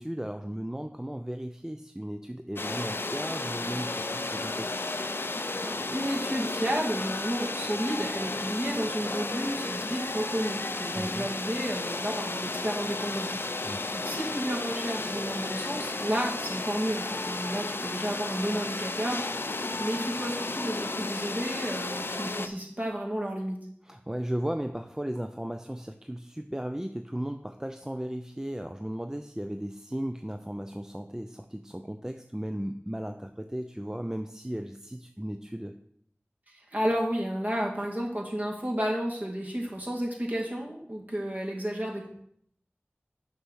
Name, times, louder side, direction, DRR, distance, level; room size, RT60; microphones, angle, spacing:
voice 1, 0.0-4.7 10.9-11.3 13.6-13.9 23.8-35.7, right 1 dB, 15° right, 6 dB, 0.5 m, -36 dB
sound 1, 2.6-22.5, left 2 dB, 60° left, 0.5 m, -33 dB
voice 2, 5.6-13.4 13.9-23.6 36.7-42.1, equal, 40° right, -2 dB, 2.3 m, -32 dB
6.6 x 5.6 x 6.4 m, 0.68 s
wide cardioid pair, 40°, 4 cm